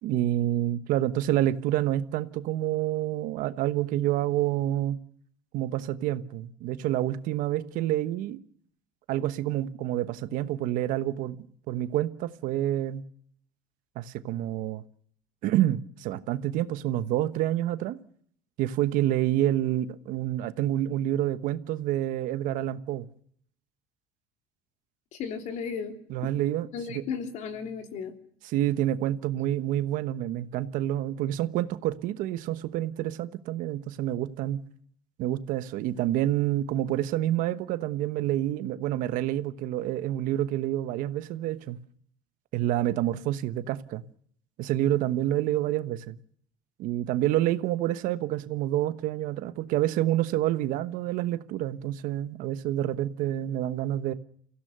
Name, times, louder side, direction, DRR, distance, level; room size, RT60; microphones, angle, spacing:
voice 1, 0.0-5.0 5.5-8.4 9.1-11.4 11.7-13.0 13.9-14.8 15.4-18.0 18.6-23.1 26.1-27.0 28.4-34.6 35.2-41.8 42.5-44.0 44.6-46.2 46.8-54.1, right 13 dB, 60° right, 1.2 m, -28 dB
voice 2, 25.1-26.0 26.2-26.3 26.7-28.1, left 6 dB, 50° left, 3.3 m, -34 dB
29.5 x 16.0 x 6.8 m
cardioid pair, 170°, 16 cm